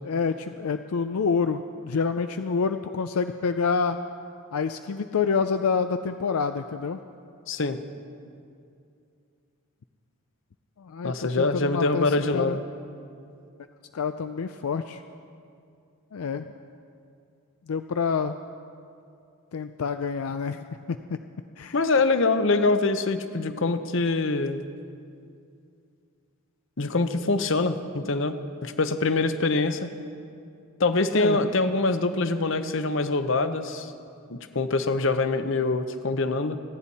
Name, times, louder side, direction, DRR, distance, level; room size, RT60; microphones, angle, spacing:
voice 1, 0.0-4.0 4.5-7.0 10.8-12.6 13.9-15.0 16.1-16.5 17.7-18.4 19.5-21.2 21.6-21.8 31.1-31.4, left 5 dB, 80° left, 9 dB, 0.4 m, -27 dB
voice 2, 7.5-7.8 11.0-12.6 21.7-24.6 26.8-28.3 28.6-29.9 30.8-33.9 34.3-36.6, left 3 dB, 60° left, 9 dB, 0.8 m, -24 dB
29.0 x 10.0 x 4.2 m, 2.4 s
head